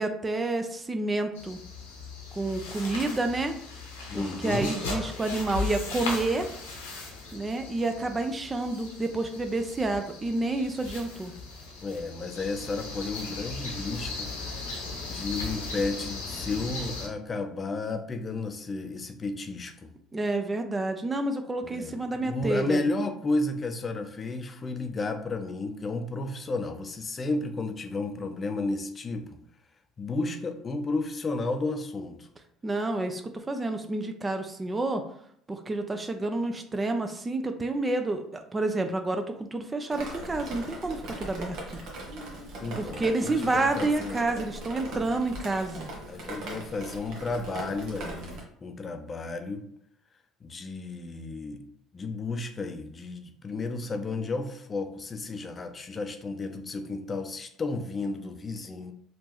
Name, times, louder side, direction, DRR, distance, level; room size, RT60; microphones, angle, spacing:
voice 1, 0.0-1.6 2.3-3.5 4.1-6.5 7.3-11.3 20.1-22.8 32.6-35.0 35.5-41.6 42.7-45.9, right 2 dB, 25° right, 6 dB, 0.4 m, -29 dB
sound 1, 1.3-17.1, left 3 dB, 90° left, 0.8 m, -38 dB
voice 2, 4.1-4.8 11.8-14.3 15.0-19.9 21.6-29.4 30.0-32.3 42.6-44.2 44.9-45.1 46.1-49.6 50.4-51.6 51.9-58.9, left 3 dB, 35° left, 6 dB, 0.5 m, -32 dB
Drip, 39.9-48.4, right 1 dB, 65° right, 1.0 m, -39 dB
3.4 x 2.5 x 3.0 m, 0.68 s
hypercardioid pair, 70°, 0 cm